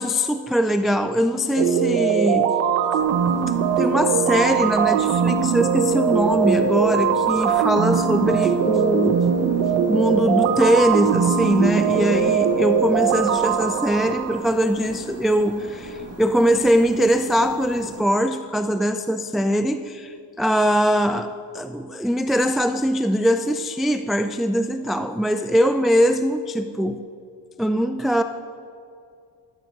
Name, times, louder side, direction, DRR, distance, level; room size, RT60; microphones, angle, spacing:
voice 1, 0.0-2.5 3.8-9.6 9.9-27.0 27.6-28.2, equal, ahead, 9 dB, 0.3 m, -21 dB
sound 1, 1.6-14.4, right 7 dB, 80° right, 1.0 m, -21 dB
sound 2, 3.0-18.0, right 3 dB, 30° right, 2.3 m, -39 dB
13.0 x 7.6 x 5.2 m, 2.4 s
supercardioid pair, 55°, 47 cm